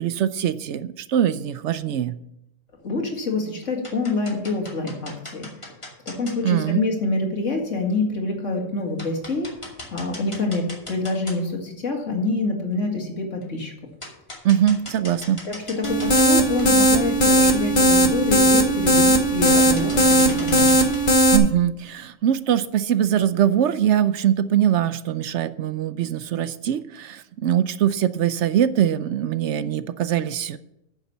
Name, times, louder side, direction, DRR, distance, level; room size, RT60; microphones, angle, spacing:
voice 1, 0.0-2.2 6.4-6.8 14.4-15.4 21.3-30.6, right 10 dB, 65° right, 14 dB, 0.8 m, -22 dB
voice 2, 2.8-5.5 6.1-9.5 9.9-13.7 15.4-20.8, left 3 dB, 65° left, 1 dB, 2.4 m, -26 dB
sound 1, 2.9-3.3 3.6-6.4 7.5-7.6 8.1-8.2 8.6-8.7 9.0-11.7 12.1-12.2 13.4-13.5 14.0-16.3 16.6-16.7 17.2-17.3 17.5-17.6 17.9-18.2 18.8-19.2 19.5-21.0, left 1 dB, 20° left, 2.5 m, -39 dB
sound 2, 15.8-21.4, right 1 dB, 40° left, 1.3 m, -17 dB
9.7 x 7.3 x 7.1 m, 0.82 s
omnidirectional pair, 1.4 m